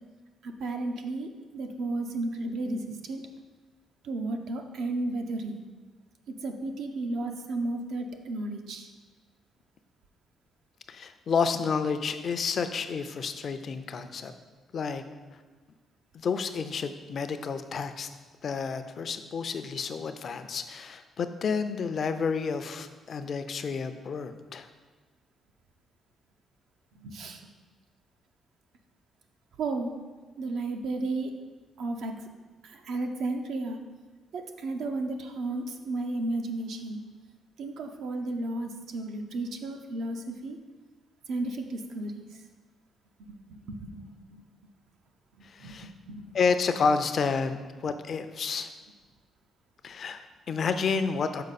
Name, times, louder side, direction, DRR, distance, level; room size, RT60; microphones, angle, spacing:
voice 1, 0.4-3.2 4.0-5.6 6.4-8.9 27.0-27.4 29.6-29.9 30.4-31.3 31.8-32.1 32.6-33.8 34.3-37.0 37.6-40.6 41.3-42.2 43.3-44.4 45.4-46.3, right 2 dB, 75° right, 4 dB, 0.6 m, -33 dB
voice 2, 10.9-14.3 14.7-15.0 16.1-18.1 18.4-24.7 45.4-45.9 46.3-48.7 49.8-51.4, left 5 dB, 55° left, 9 dB, 0.4 m, -30 dB
6.5 x 4.5 x 4.1 m, 1.3 s
cardioid pair, 90°, 0 cm